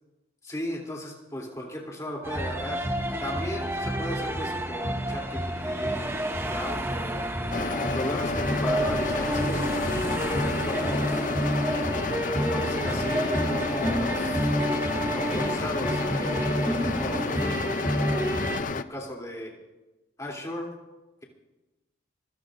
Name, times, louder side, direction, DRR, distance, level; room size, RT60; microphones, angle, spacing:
voice 1, 0.4-2.8 3.2-7.2 7.8-11.3 12.4-14.5 15.1-18.1 18.7-19.5 20.2-20.7, left 1 dB, 15° left, -2 dB, 2.9 m, -36 dB
sound 1, 2.2-18.6, right 1 dB, 10° right, 0.7 m, -29 dB
sound 2, 7.5-18.8, left 4 dB, 40° left, 0.5 m, -30 dB
26.0 x 17.0 x 2.6 m, 1.1 s
head